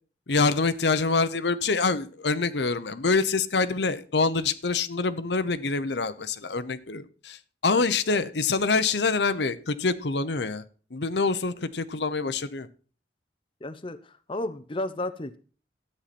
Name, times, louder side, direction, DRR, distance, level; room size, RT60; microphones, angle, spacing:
voice 1, 0.3-10.6 10.9-12.7, left 4 dB, 75° left, 12 dB, 0.9 m, -26 dB
voice 2, 13.6-14.0 14.3-15.4, left 1 dB, 30° left, 10 dB, 0.7 m, -32 dB
13.0 x 8.9 x 4.3 m, 0.40 s
head